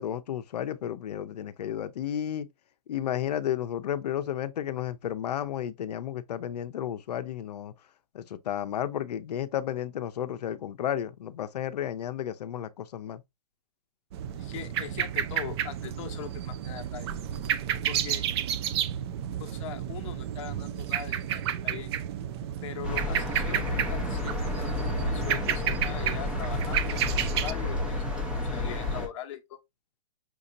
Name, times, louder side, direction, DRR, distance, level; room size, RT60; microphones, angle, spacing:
voice 1, 0.0-2.5 2.9-7.7 8.1-13.2, left 10 dB, 85° left, 0.6 m, -32 dB
sound 1, 14.1-27.5, right 10 dB, 40° right, 0.4 m, -31 dB
voice 2, 14.3-17.1 17.9-18.3 19.4-21.9 22.6-29.6, left 10 dB, 50° left, 0.9 m, -41 dB
sound 2, 22.8-29.1, left 2 dB, 5° right, 0.9 m, -31 dB
5.8 x 2.8 x 2.5 m
hypercardioid pair, 150°, 20 cm